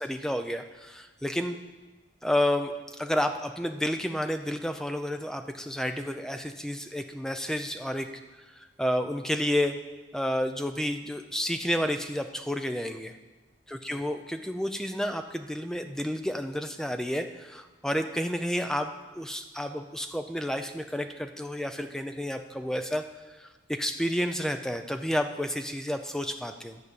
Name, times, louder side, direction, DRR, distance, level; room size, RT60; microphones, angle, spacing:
voice 1, 0.0-1.6 2.2-8.1 8.4-9.7 10.1-13.1 13.7-23.1 23.4-26.8, equal, 5° left, 7 dB, 0.5 m, -30 dB
11.0 x 5.3 x 8.1 m, 1.2 s
head